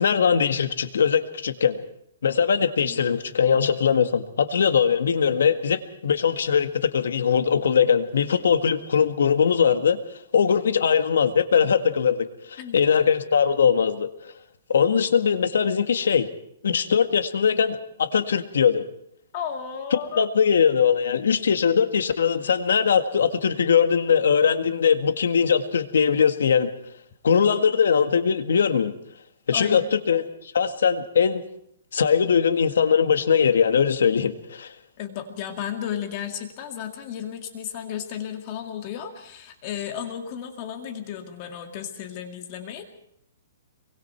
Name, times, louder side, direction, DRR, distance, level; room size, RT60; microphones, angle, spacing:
voice 1, 0.0-1.8 2.2-14.1 14.7-16.3 16.6-18.8 19.9-26.7 27.2-28.9 29.5-30.2 30.5-31.4 31.9-34.7, left 7 dB, 80° left, 9 dB, 1.8 m, -21 dB
voice 2, 19.3-20.3 29.5-29.9 35.0-42.8, left 9 dB, 30° left, 6 dB, 2.1 m, -33 dB
24.5 x 23.5 x 4.6 m, 0.73 s
hypercardioid pair, 170°, 0 cm